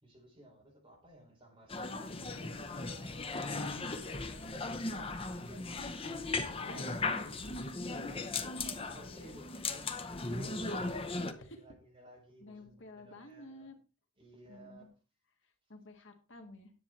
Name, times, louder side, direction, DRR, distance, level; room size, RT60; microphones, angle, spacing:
voice 1, 0.0-2.4 2.7-5.7 6.6-7.2 8.1-13.7 14.2-14.9, right 1 dB, 25° right, 4.1 m, -57 dB
sound 1, 1.7-11.3, left 3 dB, 25° left, 0.9 m, -37 dB
voice 2, 6.6-7.5 8.0-8.6 11.4-11.6 12.4-13.8 14.5-14.9 15.7-16.7, left 1 dB, 65° left, 1.7 m, -51 dB
10.0 x 8.0 x 4.3 m
head